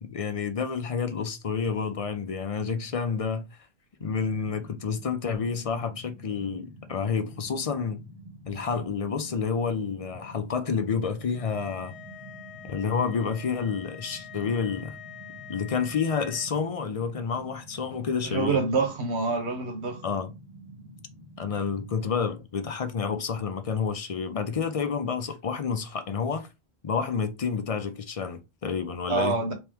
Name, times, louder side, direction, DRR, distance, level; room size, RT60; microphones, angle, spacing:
voice 1, 0.0-3.5 4.0-8.0 8.5-12.0 12.6-15.0 15.5-18.6 20.0-20.3 21.4-26.5 26.8-29.4, left 6 dB, 45° left, 0.4 m, -29 dB
sound 1, 4.0-22.0, right 1 dB, 25° right, 0.9 m, -48 dB
sound 2, 11.3-16.5, left 10 dB, 85° left, 1.0 m, -46 dB
voice 2, 18.2-20.0 29.1-29.5, right 4 dB, 80° right, 1.2 m, -26 dB
3.5 x 2.9 x 3.4 m
omnidirectional pair, 1.1 m